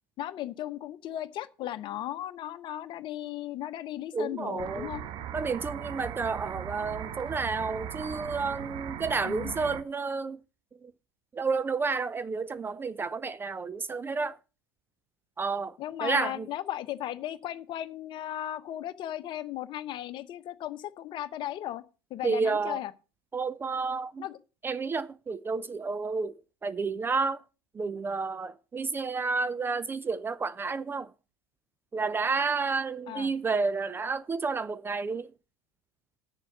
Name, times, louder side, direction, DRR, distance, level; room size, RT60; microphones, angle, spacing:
voice 1, 0.2-5.0 9.2-9.5 15.8-21.8 22.1-22.9 24.2-24.4 33.1-33.3, left 12 dB, 40° left, 1.0 m, -36 dB
voice 2, 4.1-4.9 5.3-10.4 10.8-10.9 11.3-14.4 15.4-16.5 22.2-22.8 23.3-24.2 24.6-27.4 27.7-31.1 31.9-35.3, right 4 dB, 15° right, 0.5 m, -31 dB
sound 1, 4.6-9.8, right 9 dB, 40° right, 1.0 m, -38 dB
9.2 x 6.8 x 7.1 m
figure-of-eight pair, 80°, 12 cm